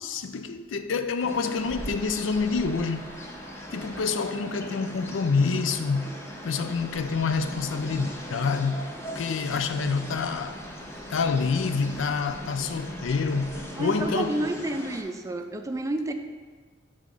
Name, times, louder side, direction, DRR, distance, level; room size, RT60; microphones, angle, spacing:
voice 1, 0.0-3.2 3.7-6.1 6.4-8.9 9.1-10.6 11.1-14.5, left 4 dB, 90° left, 0.4 m, -27 dB
sound 1, 1.2-15.0, equal, 15° left, 0.8 m, -39 dB
voice 2, 13.8-16.1, right 1 dB, 15° right, 0.4 m, -30 dB
7.5 x 3.7 x 5.3 m
head